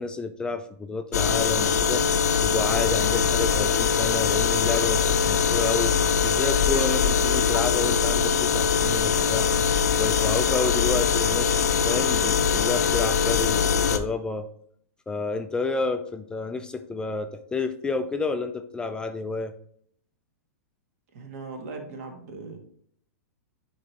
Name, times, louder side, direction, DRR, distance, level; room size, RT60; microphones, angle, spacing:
voice 1, 0.0-2.0 2.4-5.9 6.2-9.5 9.9-14.5 15.1-19.5, left 4 dB, 10° left, 7 dB, 0.4 m, -30 dB
sound 1, 1.1-14.0, left 6 dB, 80° left, 0.7 m, -22 dB
voice 2, 21.1-22.6, right 3 dB, 60° right, 3 dB, 1.7 m, -39 dB
9.0 x 3.1 x 3.4 m, 0.66 s
hypercardioid pair, 135°, 9 cm